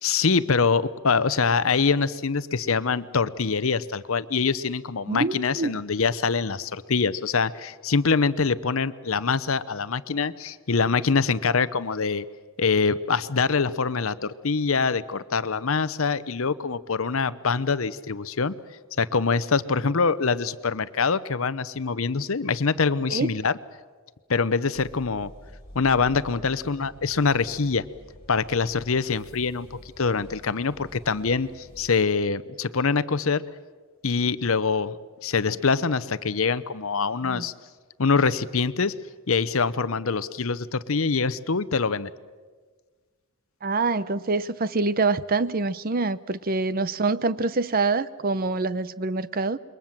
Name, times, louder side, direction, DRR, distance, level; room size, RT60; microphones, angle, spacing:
voice 1, 0.0-12.2 12.6-18.5 19.0-23.6 24.3-25.3 25.7-27.8 28.3-29.7 30.0-33.4 34.0-35.0 35.2-37.5 38.0-38.9 39.3-42.1, left 5 dB, 65° left, 15 dB, 0.8 m, -24 dB
voice 2, 5.1-5.7 23.1-23.3 37.2-37.5 43.6-49.6, right 3 dB, 40° right, 16 dB, 0.7 m, -25 dB
sound 1, 24.7-32.0, equal, 25° left, 7.8 m, -48 dB
27.5 x 23.0 x 7.4 m, 1.4 s
head